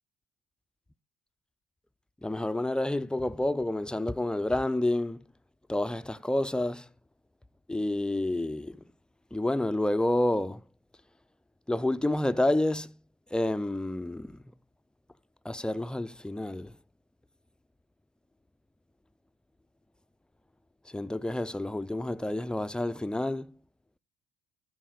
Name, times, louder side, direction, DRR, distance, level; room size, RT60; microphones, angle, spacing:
voice 1, 2.2-5.2 5.7-6.9 7.7-8.8 9.3-10.6 11.7-13.0 13.3-14.4 15.4-16.8 20.9-23.5, left 1 dB, 5° left, 0.5 m, -29 dB
13.0 x 4.7 x 3.9 m
hypercardioid pair, 55°, 19 cm